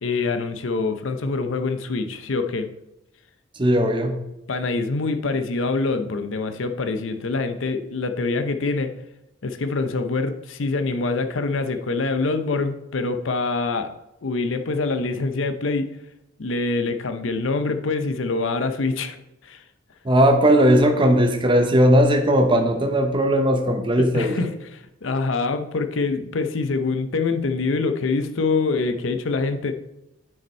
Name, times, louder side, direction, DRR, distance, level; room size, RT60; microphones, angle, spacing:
voice 1, 0.0-2.7 4.5-8.9 9.4-13.9 14.2-15.9 16.4-19.2 19.4-19.6 24.0-29.7, left 3 dB, 70° left, 8 dB, 0.6 m, -25 dB
voice 2, 3.5-4.2 20.0-24.4, equal, 25° right, 5 dB, 0.8 m, -18 dB
9.5 x 5.3 x 4.3 m, 0.88 s
head